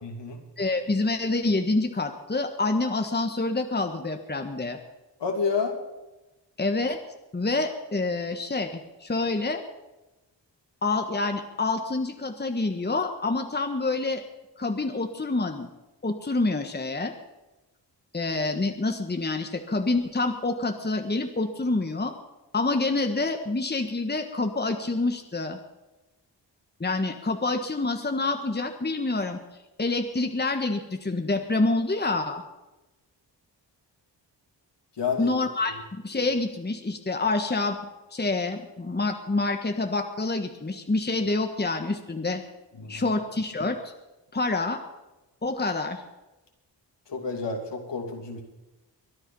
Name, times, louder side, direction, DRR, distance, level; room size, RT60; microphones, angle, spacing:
voice 1, 0.0-0.4 5.2-5.7 35.0-35.3 42.7-43.1 47.1-48.4, left 5 dB, 70° left, 2 dB, 3.0 m, -30 dB
voice 2, 0.6-4.8 6.6-7.0 7.3-9.6 10.8-14.2 14.6-15.7 16.0-17.1 18.1-22.1 22.5-25.6 26.8-29.4 29.8-32.4 35.2-37.8 38.1-42.4 42.9-43.9 44.3-44.8 45.4-46.0, left 3 dB, 20° left, 6 dB, 1.5 m, -27 dB
23.0 x 9.9 x 5.5 m, 1.0 s
cardioid pair, 55°, 44 cm